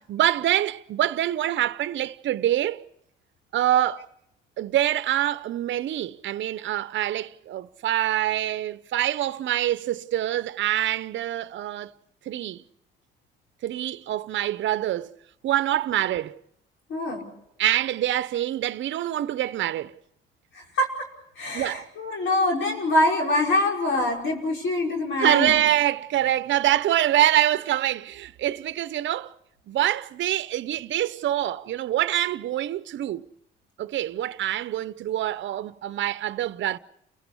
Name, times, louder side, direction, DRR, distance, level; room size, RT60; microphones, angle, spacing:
voice 1, 0.1-2.9 3.5-4.1 4.6-11.9 12.3-12.6 13.6-15.1 15.4-16.4 17.6-20.0 21.5-21.8 25.2-29.3 29.7-33.3 33.8-36.8, right 12 dB, 70° right, 0.8 m, -25 dB
voice 2, 16.9-17.2 20.5-21.1 21.4-25.6, left 1 dB, 70° left, 5.4 m, -24 dB
29.5 x 16.0 x 8.3 m
cardioid pair, 90°, 20 cm